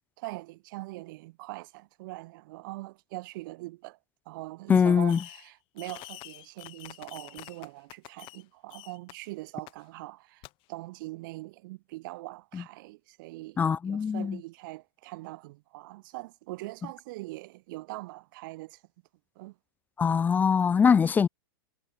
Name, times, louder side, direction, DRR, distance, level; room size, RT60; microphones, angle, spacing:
voice 1, 0.2-4.0 4.3-18.8 19.4-19.6, right 20 dB, 55° right, 5.3 m, -42 dB
voice 2, 4.7-5.2 12.5-12.6 13.6-14.4 20.0-21.3, left 6 dB, 15° left, 0.3 m, -22 dB
Fireworks, 5.1-5.5 5.8-8.4 8.7-9.1 9.7-9.8 10.4-10.5, left 22 dB, 45° left, 5.5 m, -47 dB
hypercardioid pair, 105°, 13 cm